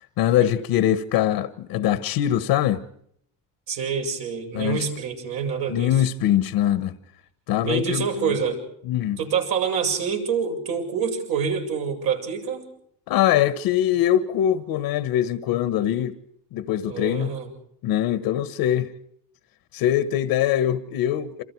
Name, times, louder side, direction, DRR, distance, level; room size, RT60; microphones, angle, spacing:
voice 1, 0.0-2.8 4.5-4.8 5.7-7.0 7.5-8.4 8.8-9.2 13.1-16.2 16.5-17.3 17.8-18.9 19.7-21.4, left 11 dB, 75° left, 1.5 m, -22 dB
voice 2, 3.7-5.9 7.6-8.6 9.2-12.6 16.9-17.5, right 6 dB, 65° right, 7.6 m, -26 dB
28.5 x 27.5 x 4.7 m
cardioid pair, 110°, 37 cm